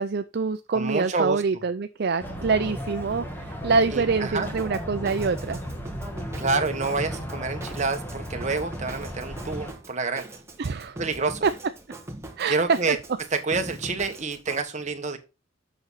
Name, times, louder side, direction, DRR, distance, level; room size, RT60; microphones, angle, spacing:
voice 1, 0.0-5.6 10.6-11.0 11.4-11.5 12.4-13.0, right 4 dB, 55° right, 0.5 m, -25 dB
voice 2, 0.7-1.4 3.9-4.5 6.4-10.2 11.0-11.4 12.5-13.0 13.3-15.2, right 3 dB, 35° right, 1.3 m, -28 dB
sound 1, 2.2-9.7, equal, 10° left, 1.7 m, -35 dB
Drum kit, 4.4-14.6, right 1 dB, 15° right, 1.4 m, -41 dB
7.9 x 6.2 x 4.0 m
head